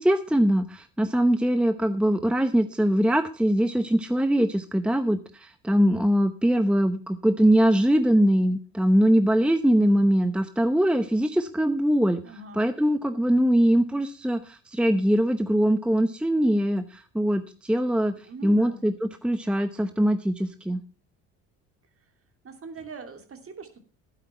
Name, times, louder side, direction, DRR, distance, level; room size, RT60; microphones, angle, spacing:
voice 1, 0.0-12.2 12.5-20.8, equal, 5° right, 10 dB, 0.8 m, -22 dB
voice 2, 12.2-12.6 18.3-18.8 22.4-23.8, right 4 dB, 40° right, 7 dB, 2.8 m, -42 dB
12.0 x 10.0 x 4.4 m, 0.37 s
supercardioid pair, 75°, 35 cm